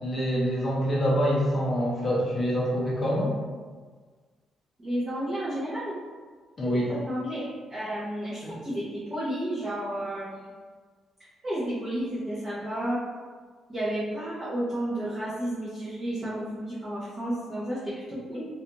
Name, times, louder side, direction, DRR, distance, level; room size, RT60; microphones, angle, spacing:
voice 1, 0.0-3.4 6.6-6.9 8.4-8.6, equal, 30° left, -4 dB, 0.6 m, -26 dB
voice 2, 4.8-6.0 6.9-10.5 11.4-13.0 13.7-18.4, right 1 dB, 20° right, -11 dB, 0.6 m, -32 dB
2.4 x 2.3 x 2.9 m, 1.5 s
cardioid pair, 165°, 0 cm